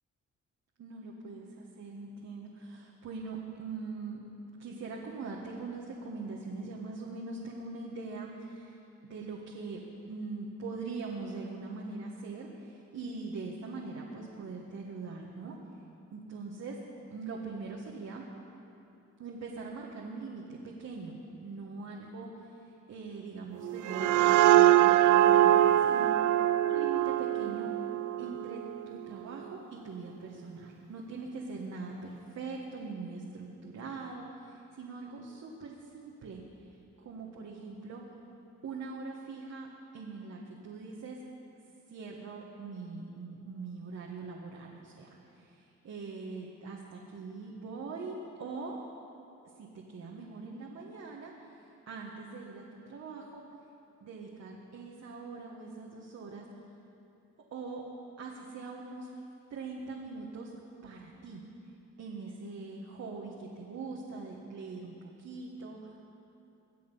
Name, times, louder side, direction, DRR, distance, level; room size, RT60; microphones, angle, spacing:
voice 1, 0.8-4.2 4.6-8.8 9.0-9.8 10.1-15.6 16.1-16.8 17.1-18.2 19.2-26.1 26.6-27.7 28.2-38.0 38.6-39.7 39.9-41.2 41.9-48.8 49.6-53.4 54.0-56.4 57.5-57.8 58.2-59.1 59.5-60.5 60.8-61.4 62.0-66.0, right 4 dB, 60° right, -2 dB, 1.7 m, -42 dB
sound 1, 23.6-29.1, right 13 dB, 75° right, 0.5 m, -23 dB
23.0 x 7.9 x 5.6 m, 2.8 s
cardioid pair, 90°, 30 cm